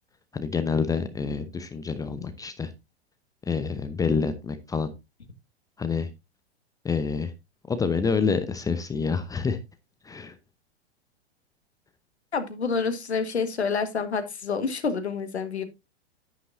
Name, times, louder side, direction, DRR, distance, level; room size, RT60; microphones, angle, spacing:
voice 1, 0.3-2.7 3.5-4.9 5.8-6.1 6.8-7.3 7.7-9.6 10.0-10.4, left 5 dB, 10° left, 11 dB, 0.8 m, -27 dB
voice 2, 12.3-15.6, left 5 dB, 75° left, 10 dB, 1.7 m, -28 dB
10.5 x 9.3 x 2.6 m, 0.22 s
figure-of-eight pair, 100°, 33 cm